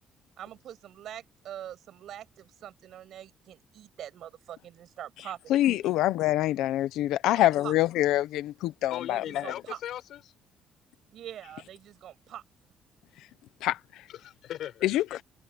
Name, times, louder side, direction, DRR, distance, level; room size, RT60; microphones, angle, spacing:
voice 1, 0.4-6.0 7.2-7.7 9.1-9.8 11.1-12.4, right 11 dB, 55° right, 7.9 m, -44 dB
voice 2, 5.5-9.2 13.6-13.8 14.8-15.0, left 14 dB, 85° left, 0.8 m, -25 dB
voice 3, 8.9-10.3 14.1-14.9, left 12 dB, 60° left, 6.4 m, -39 dB
cardioid pair, 175°, 0 cm